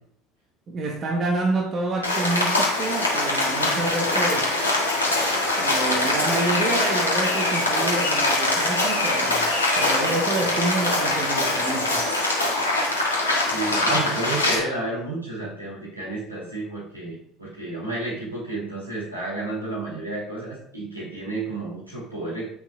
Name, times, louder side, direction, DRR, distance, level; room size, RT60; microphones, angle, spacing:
voice 1, 0.7-4.5 5.6-9.5 9.8-12.1 13.7-13.9, right 2 dB, 35° right, 1.0 m, -28 dB
Rain, 2.0-14.6, left 2 dB, 80° left, 1.5 m, -23 dB
voice 2, 13.5-22.5, right 2 dB, 85° right, 2.5 m, -31 dB
8.9 x 4.7 x 2.4 m
figure-of-eight pair, 65°, 0 cm